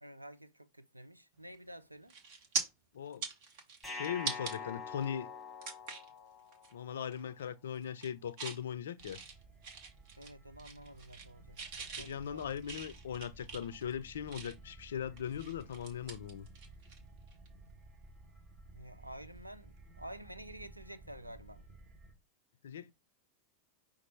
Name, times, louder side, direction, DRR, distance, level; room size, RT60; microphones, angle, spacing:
voice 1, 0.0-2.2 10.2-12.6 18.7-21.6, right 1 dB, 85° right, 0.3 m, -50 dB
sound 1, 1.5-1.7 2.1-2.6 3.1-4.5 5.0-5.1 5.6-6.1 6.5-6.7 7.0-7.5 7.8-8.6 9.0-10.3 10.6-11.3 11.6-14.7 15.2-17.0 17.3-17.5 19.3-19.5, right 4 dB, 45° right, 1.0 m, -42 dB
voice 2, 2.9-3.2 3.9-5.3 6.7-9.2 12.0-16.5 22.6-22.9, left 8 dB, 65° left, 0.3 m, -39 dB
sound 2, 3.8-6.9, left 4 dB, 10° left, 1.2 m, -45 dB
sound 3, 9.0-22.1, right 2 dB, 30° right, 1.2 m, -56 dB
5.2 x 2.4 x 4.1 m
figure-of-eight pair, 90°, 0 cm